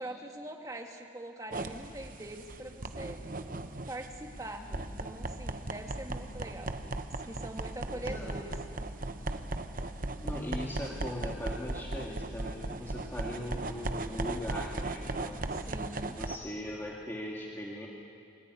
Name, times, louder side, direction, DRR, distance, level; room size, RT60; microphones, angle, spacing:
voice 1, 0.0-3.2 3.9-4.6 5.0-6.7 7.2-8.5 15.6-16.2, right 1 dB, 15° right, 3 dB, 1.7 m, -43 dB
sound 1, 1.5-16.4, right 2 dB, 45° right, 0.9 m, -37 dB
voice 2, 7.9-8.4 10.2-15.4 16.1-17.9, left 1 dB, 10° left, -3 dB, 1.9 m, -40 dB
25.0 x 14.5 x 9.7 m, 2.6 s
head